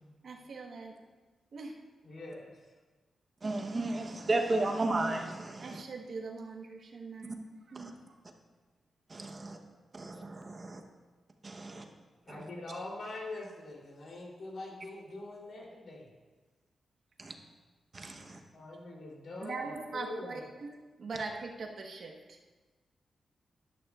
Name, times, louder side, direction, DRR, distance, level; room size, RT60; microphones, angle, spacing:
voice 1, 0.2-0.9 1.5-1.7 5.6-7.4 7.7-7.9 19.4-22.5, right 4 dB, 65° right, 2 dB, 1.2 m, -41 dB
voice 2, 2.0-2.6 12.3-16.1 18.5-20.5, left 2 dB, 65° left, -2 dB, 3.1 m, -43 dB
voice 3, 3.4-5.8 7.8-7.9 9.1-9.6 10.0-10.6 11.4-11.8 17.2-17.3 17.9-18.4, right 2 dB, 35° right, 4 dB, 0.9 m, -33 dB
12.0 x 11.5 x 2.4 m, 1.3 s
wide cardioid pair, 110°, 0 cm